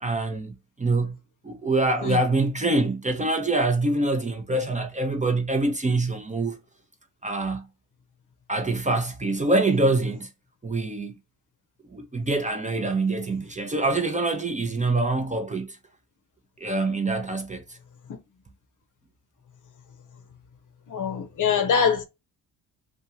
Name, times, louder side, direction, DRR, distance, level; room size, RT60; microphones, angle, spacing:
voice 1, 0.0-1.1 1.4-6.6 7.2-7.6 8.5-10.3 10.6-11.1 11.9-15.8 16.6-17.6, right 2 dB, 15° right, 0.7 m, -25 dB
voice 2, 20.9-22.0, left 6 dB, 45° left, 0.8 m, -23 dB
2.6 x 2.4 x 2.8 m
supercardioid pair, 60°, 43 cm